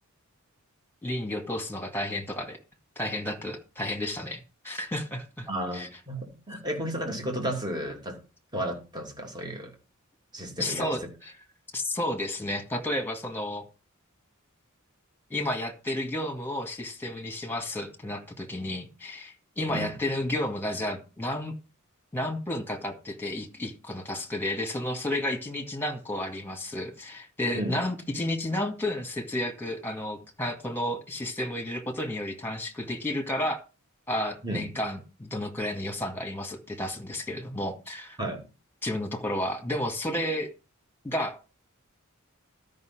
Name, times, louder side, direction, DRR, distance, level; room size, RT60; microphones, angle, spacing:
voice 1, 1.0-2.6 3.0-5.5 5.7-5.9 10.6-11.4 11.7-13.6 15.3-21.5 22.1-33.6 34.1-38.2 38.8-40.5 41.0-41.4, left 1 dB, 10° left, 2.0 m, -32 dB
voice 2, 5.5-8.2 8.5-9.7 10.3-10.9 19.7-19.9 27.5-27.8 34.4-34.6 38.2-38.5, right 1 dB, 20° right, 2.8 m, -33 dB
12.5 x 5.6 x 6.1 m
head